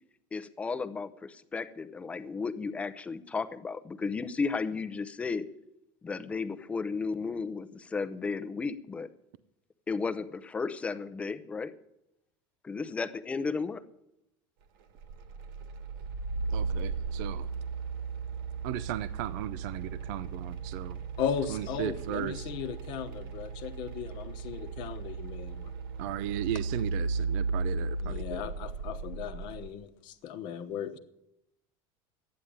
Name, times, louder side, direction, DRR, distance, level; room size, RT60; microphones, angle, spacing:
voice 1, 0.3-5.5 6.0-9.1 9.9-11.7 12.6-13.8, left 4 dB, 10° left, 13 dB, 0.6 m, -34 dB
sound 1, 15.0-29.7, right 4 dB, 85° right, 1.9 m, -36 dB
voice 2, 16.5-17.5 18.6-21.0 21.5-22.5 26.0-28.4, right 13 dB, 60° right, 14 dB, 0.6 m, -36 dB
voice 3, 21.2-25.7 28.0-31.0, left 8 dB, 45° left, 8 dB, 1.0 m, -36 dB
13.0 x 9.5 x 8.7 m, 0.82 s
cardioid pair, 180°, 11 cm